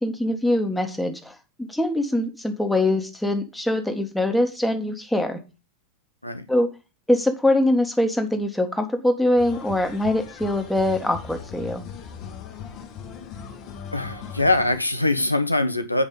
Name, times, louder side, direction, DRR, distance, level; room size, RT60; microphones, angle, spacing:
voice 1, 0.0-5.4 6.5-6.7 7.1-11.8, left 1 dB, 5° left, 5 dB, 1.6 m, -23 dB
sound 1, 9.4-14.8, left 7 dB, 35° left, 1.5 m, -39 dB
voice 2, 13.9-16.0, left 2 dB, 85° left, 9 dB, 0.9 m, -22 dB
8.3 x 5.3 x 5.2 m, 0.29 s
figure-of-eight pair, 90°, 0 cm